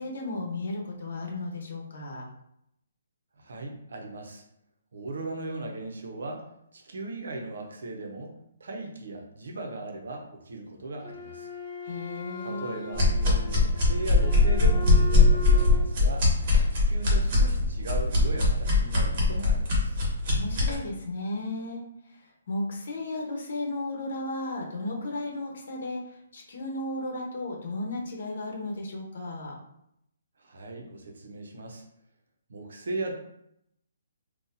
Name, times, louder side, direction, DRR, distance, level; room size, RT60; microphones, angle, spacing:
voice 1, 0.0-2.3 11.8-13.5 20.3-29.6, left 2 dB, 55° left, 0 dB, 1.0 m, -35 dB
voice 2, 3.4-4.4 4.9-6.5 6.7-11.5 12.4-13.1 13.4-16.3 16.7-20.0 30.4-31.8 32.5-33.1, right 2 dB, 70° right, 2 dB, 0.8 m, -38 dB
Wind instrument woodwind instrument, 11.0-15.9, equal, 35° left, 0.6 m, -39 dB
sound 1, 12.9-20.7, left 3 dB, 30° right, 1.1 m, -21 dB
4.0 x 2.4 x 2.7 m, 0.77 s
hypercardioid pair, 170°, 0 cm